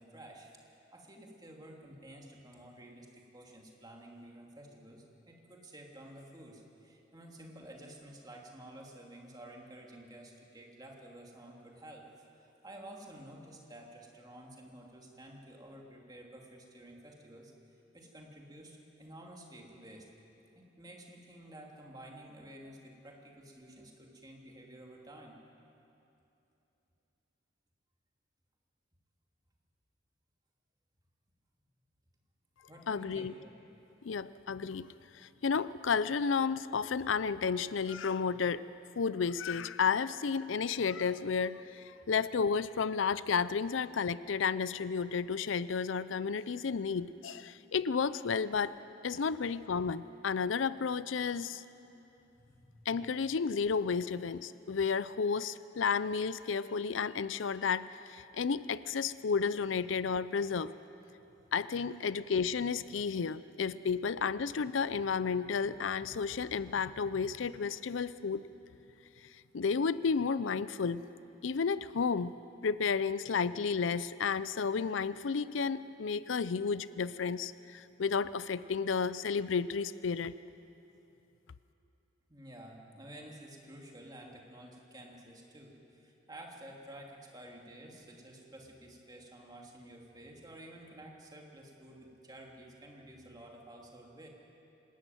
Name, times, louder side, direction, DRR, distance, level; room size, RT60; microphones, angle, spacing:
voice 1, 0.0-12.0 12.4-17.5 17.9-20.1 20.8-25.3 32.7-33.5 52.4-52.9 82.3-94.3, right 1 dB, 20° right, 0 dB, 2.7 m, -51 dB
voice 2, 32.9-33.3 34.0-38.6 39.0-48.8 49.0-51.6 52.9-60.7 61.5-68.5 69.5-71.1 71.4-72.3 72.6-80.4, left 5 dB, 80° left, 16 dB, 0.5 m, -32 dB
25.5 x 14.0 x 9.3 m, 2.9 s
head